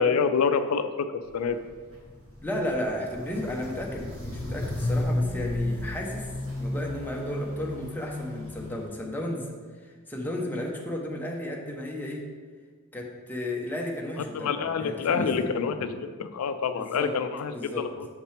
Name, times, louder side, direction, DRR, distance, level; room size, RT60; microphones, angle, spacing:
voice 1, 0.0-1.6 14.3-18.1, left 5 dB, 90° left, 9 dB, 0.4 m, -27 dB
Walk footsteps, 1.2-8.9, left 1 dB, 65° right, 1.9 m, -33 dB
voice 2, 2.4-6.3 6.5-9.5 9.8-12.2 12.9-14.5 14.8-15.5 16.7-17.1 17.5-17.9, left 1 dB, 10° left, -1 dB, 0.8 m, -33 dB
6.5 x 5.9 x 3.3 m, 1.5 s
head